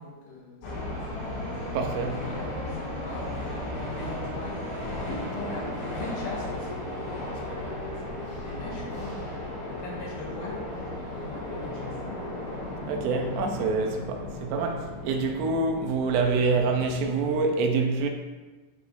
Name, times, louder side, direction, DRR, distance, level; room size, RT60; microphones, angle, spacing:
voice 1, 0.0-3.3 3.9-4.6 5.0-12.0, left 1 dB, 60° left, 2.4 m, -41 dB
sound 1, 0.6-17.4, left 1 dB, 85° left, 4.5 m, -35 dB
voice 2, 1.7-2.2 12.9-18.1, right 4 dB, 80° right, 2.7 m, -26 dB
11.5 x 4.7 x 2.6 m
omnidirectional pair, 5.1 m